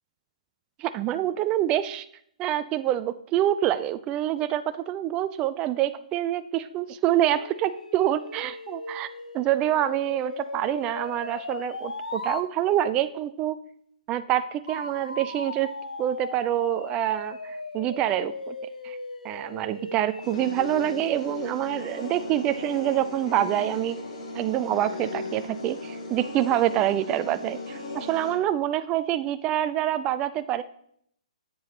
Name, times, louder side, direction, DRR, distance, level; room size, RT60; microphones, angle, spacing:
voice 1, 0.8-2.1 2.4-9.1 9.3-13.6 14.1-15.7 16.0-18.5 18.8-19.0 19.2-24.0 24.3-30.6, right 12 dB, 25° right, 13 dB, 0.3 m, -26 dB
sound 1, 7.3-12.5 14.7-20.5, left 2 dB, 85° left, 0.8 m, -37 dB
sound 2, 20.2-28.3, left 3 dB, 60° left, 2.3 m, -37 dB
8.5 x 7.7 x 2.9 m, 0.68 s
figure-of-eight pair, 125°, 4 cm